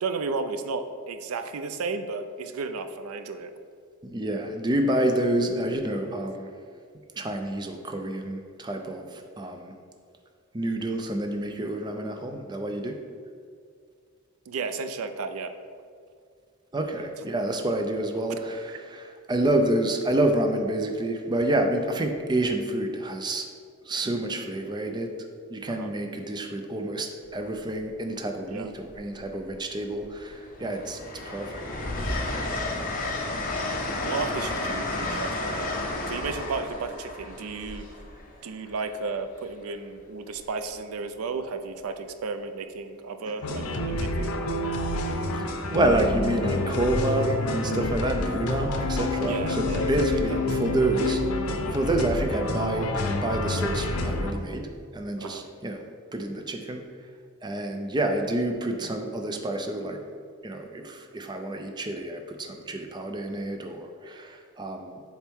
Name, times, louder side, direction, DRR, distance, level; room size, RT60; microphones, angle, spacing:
voice 1, 0.0-3.5 14.5-15.5 18.7-18.8 25.7-25.9 28.5-28.7 34.0-35.6 36.1-37.9 38.4-44.3 49.2-50.4 55.2-55.5, right 4 dB, 85° right, 9 dB, 0.4 m, -33 dB
voice 2, 4.0-6.5 7.1-9.7 10.5-13.0 16.7-23.5 23.8-25.1 25.5-31.0 31.2-31.6 45.3-51.2 51.7-55.8 56.1-56.8 57.4-60.0 60.4-65.0, right 1 dB, 20° right, 5 dB, 0.4 m, -28 dB
Train, 27.2-27.6 28.9-29.6 30.0-38.8 40.4-40.6, left 2 dB, 40° left, 0.9 m, -32 dB
sound 1, 43.4-54.3, left 2 dB, 90° left, 0.6 m, -28 dB
7.2 x 4.3 x 3.5 m, 2.2 s
head